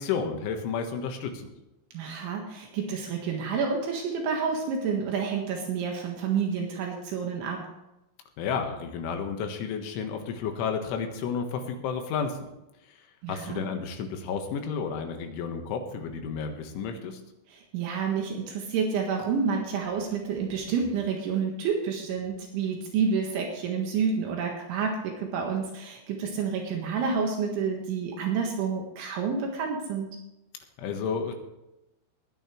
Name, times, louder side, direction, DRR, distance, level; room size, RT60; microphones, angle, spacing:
voice 1, 0.0-1.5 8.4-12.4 13.3-17.2 30.8-31.3, left 6 dB, 75° left, 5 dB, 3.8 m, -31 dB
voice 2, 1.9-7.6 13.2-13.6 17.5-30.1, right 6 dB, 75° right, 1 dB, 3.9 m, -29 dB
20.5 x 10.0 x 3.3 m, 0.93 s
omnidirectional pair, 5.8 m